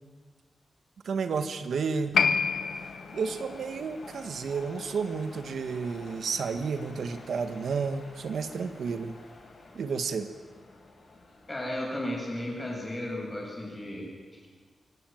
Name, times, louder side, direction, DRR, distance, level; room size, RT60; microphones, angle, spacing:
voice 1, 1.0-2.2 3.1-9.1 9.7-10.3, right 5 dB, 75° right, 9 dB, 1.3 m, -31 dB
Piano, 2.1-9.1 9.4-9.5, left 6 dB, 85° left, 1.5 m, -33 dB
sound 1, 2.4-11.8, left 2 dB, 50° left, 6.6 m, -50 dB
voice 2, 11.5-14.5, left 1 dB, 15° left, -2 dB, 7.7 m, -35 dB
23.5 x 17.0 x 9.0 m, 1.5 s
wide cardioid pair, 160°, 0 cm